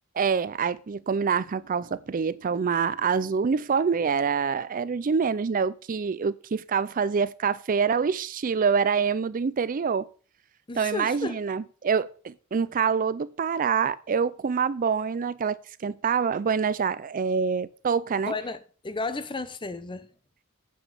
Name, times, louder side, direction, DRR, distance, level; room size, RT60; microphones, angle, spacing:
voice 1, 0.2-10.1 10.8-18.3, right 6 dB, 40° right, 0.4 m, -26 dB
voice 2, 10.7-11.4 18.3-20.1, left 3 dB, 20° left, 0.7 m, -33 dB
9.2 x 6.0 x 6.9 m
head